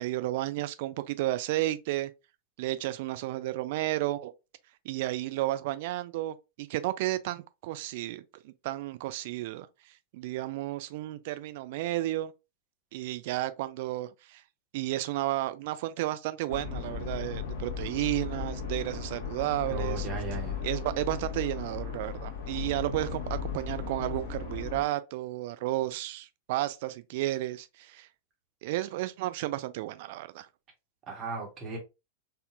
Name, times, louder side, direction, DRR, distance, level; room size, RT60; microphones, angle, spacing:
voice 1, 0.0-2.1 2.6-4.3 4.9-9.7 10.1-12.3 12.9-14.4 14.7-20.1 20.6-28.1 28.6-30.5, right 16 dB, 50° right, 0.3 m, -32 dB
sound 1, 16.5-24.8, left 6 dB, 50° left, 1.2 m, -36 dB
voice 2, 19.7-20.6 31.1-31.8, right 5 dB, 30° right, 1.4 m, -36 dB
4.0 x 2.6 x 2.7 m
figure-of-eight pair, 90°, 0 cm